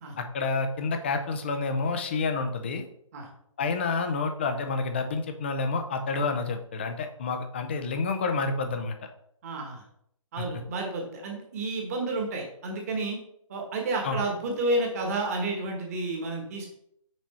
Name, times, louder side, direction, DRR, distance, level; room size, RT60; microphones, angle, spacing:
voice 1, 0.2-2.9 3.6-8.9 10.4-10.5 14.0-14.2, left 4 dB, 20° left, 7 dB, 0.5 m, -29 dB
voice 2, 9.4-9.8 10.3-13.2 13.5-16.7, right 2 dB, 25° right, 1 dB, 1.3 m, -30 dB
6.1 x 4.3 x 4.2 m, 0.71 s
hypercardioid pair, 165°, 17 cm